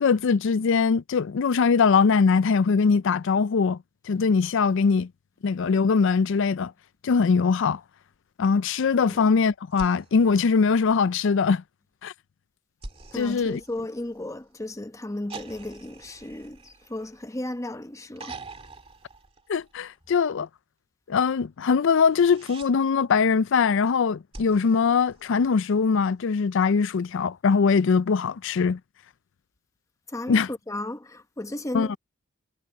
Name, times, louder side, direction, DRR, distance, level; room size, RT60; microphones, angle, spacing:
voice 1, 0.0-3.8 4.1-5.1 5.4-6.7 7.0-7.8 8.4-11.6 12.0-12.1 13.1-13.6 19.5-20.5 21.1-28.8 30.3-30.5 31.7-32.0, left 5 dB, 65° left, 0.4 m, -22 dB
sound 1, 9.7-11.3 12.8-14.5 15.3-17.6 18.2-20.0 22.0-22.7 24.3-25.8 27.3-27.4, right 3 dB, 30° right, 2.1 m, -45 dB
voice 2, 13.1-18.4 30.1-32.0, left 1 dB, 15° left, 0.9 m, -35 dB
head